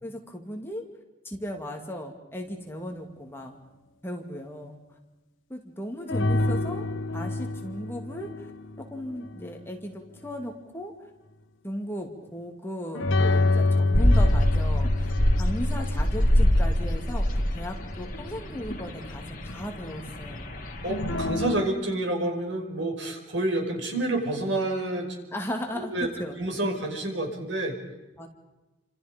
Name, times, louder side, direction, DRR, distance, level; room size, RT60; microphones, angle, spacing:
voice 1, 0.0-0.9 1.2-3.5 4.0-4.8 5.5-6.9 7.1-8.5 8.8-10.9 11.6-15.1 15.4-20.5 25.3-26.4 28.2-28.3, equal, 10° left, 2 dB, 2.5 m, -36 dB
sound 1, 6.1-9.5 12.9-17.5 20.9-21.7, left 2 dB, 90° left, 1.3 m, -27 dB
sound 2, 13.9-21.2, equal, 45° left, 3.2 m, -25 dB
voice 2, 20.8-25.2 25.7-26.1 26.4-27.7, right 2 dB, 75° right, 2 dB, 5.6 m, -28 dB
29.5 x 26.5 x 5.3 m, 1.1 s
head